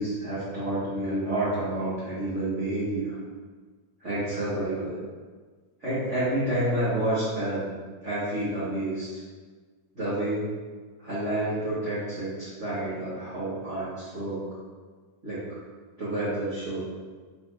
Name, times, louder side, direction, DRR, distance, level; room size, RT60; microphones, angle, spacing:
voice 1, 0.0-3.2 4.0-4.9 5.8-7.7 8.0-9.1 9.9-10.5 11.0-14.4 15.2-15.5 16.0-16.8, right 1 dB, 25° right, -14 dB, 1.9 m, -29 dB
10.0 x 4.6 x 3.0 m, 1.5 s
omnidirectional pair, 4.4 m